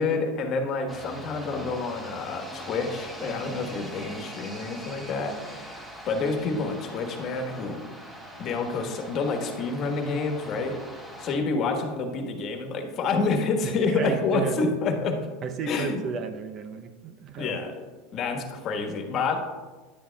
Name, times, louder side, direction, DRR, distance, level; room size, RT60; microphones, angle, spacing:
voice 1, 0.0-7.8 8.4-10.8 11.2-15.2 15.7-16.0 17.4-17.7 18.1-19.3, left 4 dB, 45° left, 4 dB, 1.3 m, -28 dB
sound 1, 0.9-11.4, equal, 10° right, 1.7 m, -42 dB
voice 2, 14.0-14.6 15.4-17.6, right 6 dB, 40° right, 8 dB, 0.6 m, -33 dB
10.0 x 9.5 x 2.3 m, 1.3 s
supercardioid pair, 115°, 0 cm